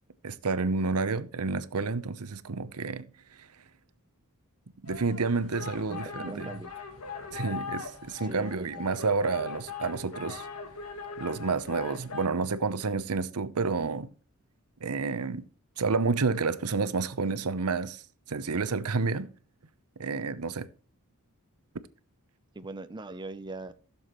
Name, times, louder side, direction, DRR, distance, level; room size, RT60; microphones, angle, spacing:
voice 1, 0.2-3.1 3.4-3.5 4.8-6.5 7.3-10.5 11.2-14.1 14.8-15.5 15.8-18.0 18.3-19.3 20.0-20.7, right 4 dB, 90° right, 0.8 m, -29 dB
sound 1, 4.9-12.3, left 5 dB, 70° left, 1.7 m, -40 dB
voice 2, 5.7-6.7 8.3-8.9 22.5-23.7, right 2 dB, 20° right, 0.6 m, -41 dB
15.0 x 7.2 x 3.1 m
head